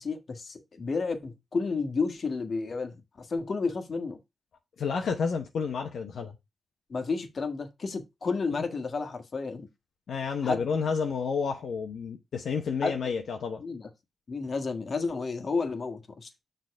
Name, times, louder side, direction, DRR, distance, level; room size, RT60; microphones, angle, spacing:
voice 1, 0.0-4.2 6.9-9.7 10.4-10.6 12.8-13.0 13.6-13.9 14.3-16.3, left 4 dB, 50° left, 1.6 m, -31 dB
voice 2, 4.8-6.4 10.1-13.6, left 5 dB, 80° left, 1.0 m, -30 dB
6.8 x 3.9 x 4.7 m
cardioid pair, 80°, 0 cm